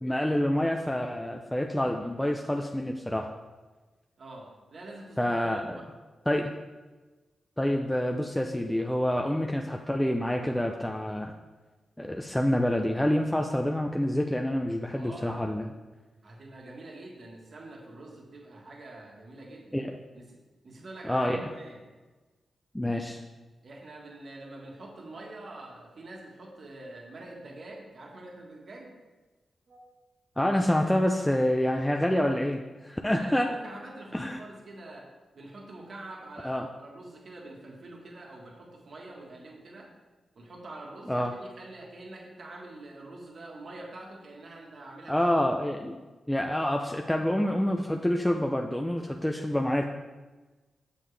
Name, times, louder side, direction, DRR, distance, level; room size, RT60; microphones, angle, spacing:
voice 1, 0.0-3.3 5.2-5.8 6.3-6.5 7.6-11.3 12.0-15.7 19.7-20.0 21.0-21.5 22.7-23.2 30.4-33.5 34.1-34.4 36.4-36.7 41.1-41.3 45.1-46.0 46.3-49.8, left 1 dB, 5° left, 2 dB, 0.5 m, -27 dB
voice 2, 4.2-5.9 14.9-15.4 16.2-19.8 20.1-21.8 23.6-28.9 29.7-29.8 31.3-31.4 32.1-32.4 33.1-35.1 35.3-39.9 40.3-45.3, right 2 dB, 55° right, -1 dB, 1.6 m, -45 dB
7.5 x 6.9 x 3.3 m, 1.2 s
cardioid pair, 80°, 0 cm